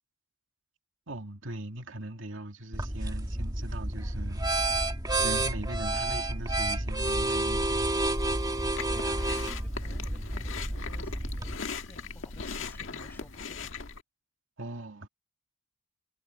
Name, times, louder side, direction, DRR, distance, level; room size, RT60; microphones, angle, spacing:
voice 1, 1.1-4.4 5.2-8.0 14.6-15.1, right 1 dB, 80° right, 2.3 m, -40 dB
sound 1, 2.7-11.5, right 2 dB, 20° right, 1.6 m, -30 dB
Chewing mastication, 8.0-14.0, left 4 dB, 85° left, 1.7 m, -39 dB
voice 2, 8.8-11.6 11.9-13.8, left 1 dB, 10° left, 6.4 m, -53 dB
head